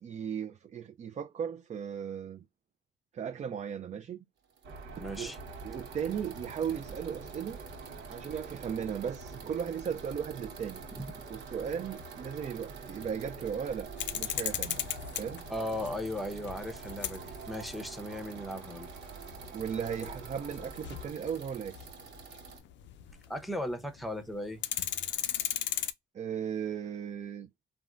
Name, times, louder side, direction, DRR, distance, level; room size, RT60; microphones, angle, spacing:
voice 1, 0.0-2.4 3.1-4.2 5.2-5.3 5.6-7.6 8.1-10.8 11.3-14.8 15.2-15.5 19.5-21.9 26.1-27.5, right 8 dB, 35° right, 0.4 m, -36 dB
sound 1, 4.4-22.6, right 6 dB, 65° right, 1.2 m, -50 dB
sound 2, 4.6-21.1, right 3 dB, 85° right, 0.9 m, -46 dB
voice 2, 5.0-5.4 10.9-11.2 15.5-18.9 23.3-24.6, left 1 dB, ahead, 0.7 m, -37 dB
sound 3, 14.0-23.5 23.8-23.9 24.2-25.9, left 11 dB, 65° left, 0.4 m, -37 dB
3.5 x 2.1 x 2.4 m
cardioid pair, 90°, 20 cm